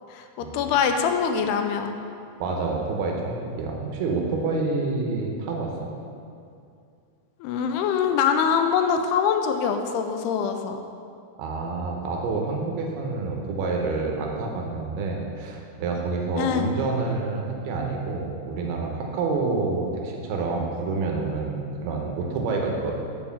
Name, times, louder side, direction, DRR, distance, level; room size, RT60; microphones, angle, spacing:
voice 1, 0.1-1.9 7.4-10.8 16.4-16.7, left 7 dB, 85° left, 6 dB, 2.5 m, -24 dB
voice 2, 2.4-5.9 11.4-23.0, right 3 dB, 80° right, 0 dB, 2.7 m, -28 dB
7.7 x 4.4 x 7.1 m, 2.4 s
omnidirectional pair, 4.6 m